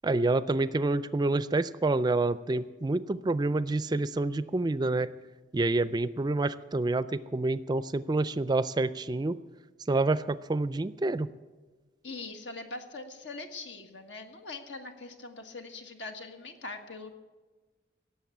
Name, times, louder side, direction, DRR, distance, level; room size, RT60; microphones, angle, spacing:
voice 1, 0.0-5.1 5.5-9.4 9.9-11.3, right 2 dB, 25° right, 15 dB, 0.4 m, -28 dB
voice 2, 12.0-17.1, left 3 dB, 80° left, 5 dB, 1.6 m, -42 dB
17.5 x 7.3 x 8.4 m, 1.3 s
head